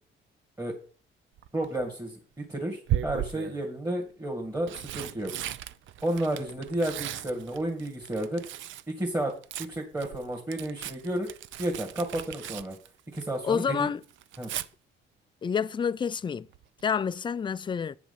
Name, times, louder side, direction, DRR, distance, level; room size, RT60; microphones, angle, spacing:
Tearing, 1.4-1.8 2.9-3.6 4.4-8.9 9.2-13.5 13.8-14.7 16.5-16.8 17.1-17.2, right 12 dB, 75° right, 0.5 m, -36 dB
voice 1, 1.5-5.3 6.0-8.4 8.9-9.3 9.6-11.3 11.6-12.8 13.1-13.9 14.4-14.5, right 1 dB, 15° right, 2.3 m, -32 dB
voice 2, 13.4-14.0 15.4-16.5 16.8-18.0, left 7 dB, 25° left, 0.4 m, -28 dB
8.9 x 6.0 x 5.7 m
cardioid pair, 90°, 20 cm